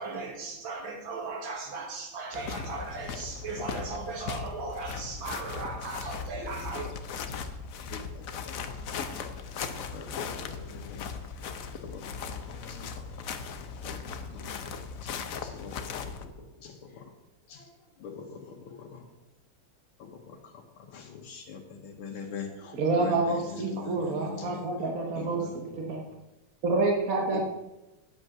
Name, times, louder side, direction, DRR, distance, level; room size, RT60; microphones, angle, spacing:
voice 1, 0.0-6.9, right 3 dB, 75° right, 0 dB, 2.5 m, -37 dB
sound 1, 2.3-16.3, left 5 dB, 60° left, 0.9 m, -38 dB
voice 2, 9.9-11.0 11.9-12.9 13.8-14.0 14.3-14.6 15.4-15.7 16.6-16.7 17.5-17.6 18.0-18.2 18.7-19.0 20.9-23.4 23.7-24.6 25.2-25.5 27.3-27.4, left 6 dB, 90° left, 0 dB, 1.9 m, -42 dB
voice 3, 22.7-25.5 25.7-26.0 26.6-27.4, right 3 dB, 50° right, 1 dB, 1.4 m, -28 dB
8.5 x 8.1 x 5.9 m, 1.0 s
omnidirectional pair, 2.2 m